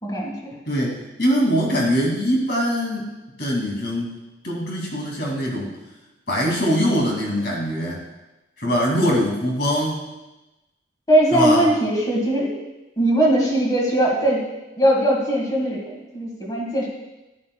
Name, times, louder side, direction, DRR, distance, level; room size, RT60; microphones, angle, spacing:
voice 1, 0.0-0.6 11.1-12.5 13.0-14.5 14.8-16.9, right 1 dB, 20° left, -2 dB, 1.8 m, -20 dB
voice 2, 0.7-3.0 3.4-4.2 4.4-5.8 6.3-8.0 8.6-10.0 11.3-11.7, equal, 55° left, -2 dB, 2.5 m, -22 dB
11.0 x 11.0 x 2.3 m, 1.0 s
head